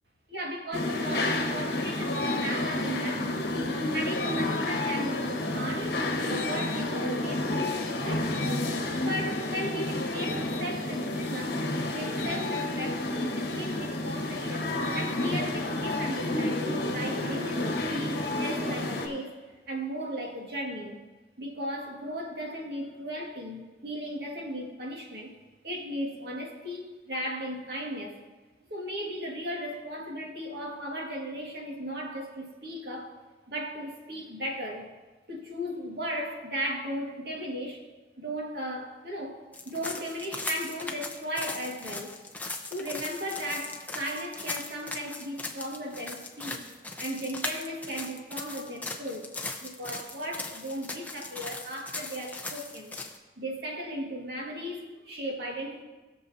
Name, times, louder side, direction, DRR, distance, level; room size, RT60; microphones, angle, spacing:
voice 1, 0.3-3.6 3.9-6.0 6.2-8.4 9.0-11.6 11.9-19.3 19.7-21.0 21.4-25.3 25.6-28.1 28.7-33.2 33.5-34.9 35.3-37.8 38.2-39.4 39.6-42.1 42.7-46.6 47.0-49.3 49.6-53.0 53.4-55.8, equal, 60° right, -1 dB, 1.9 m, -36 dB
sound 1, 0.7-19.1, left 2 dB, 60° left, 1.5 m, -30 dB
Human voice, 16.7-17.9 18.3-19.3, right 1 dB, 30° right, 2.9 m, -44 dB
sound 2, 39.5-53.2, left 3 dB, 10° left, 0.8 m, -38 dB
20.0 x 6.9 x 2.8 m, 1.2 s
head